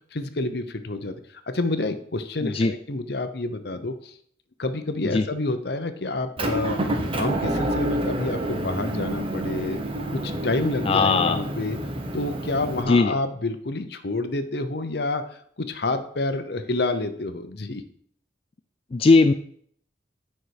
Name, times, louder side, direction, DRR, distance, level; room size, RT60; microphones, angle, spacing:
voice 1, 0.1-1.2 1.5-4.1 4.6-9.8 10.1-11.8 12.1-15.2 15.6-17.8, left 2 dB, 65° left, 10 dB, 0.9 m, -28 dB
voice 2, 2.4-2.7 5.1-5.2 10.9-11.4 12.9-13.1 18.9-19.3, left 3 dB, 30° left, 7 dB, 0.3 m, -18 dB
Motor vehicle (road) / Engine, 6.4-12.8, right 1 dB, 30° right, 1.1 m, -28 dB
9.5 x 5.8 x 4.7 m, 0.62 s
head